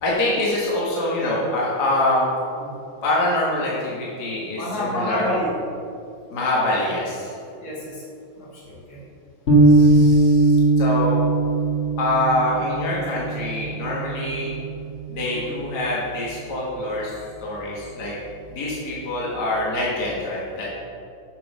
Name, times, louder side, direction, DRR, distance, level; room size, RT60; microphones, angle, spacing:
voice 1, 0.0-2.3 3.0-5.3 6.3-7.3 9.6-11.2 12.0-14.5 15.1-18.1 18.5-20.7, left 1 dB, 55° left, -6 dB, 2.1 m, -25 dB
voice 2, 4.5-5.5 7.6-8.0 8.4-9.0 14.4-14.5 15.3-15.5, left 1 dB, 80° left, -6 dB, 3.1 m, -29 dB
sound 1, 9.5-15.9, right 2 dB, 35° left, 1.7 m, -20 dB
8.8 x 5.8 x 5.4 m, 2.5 s
omnidirectional pair, 2.2 m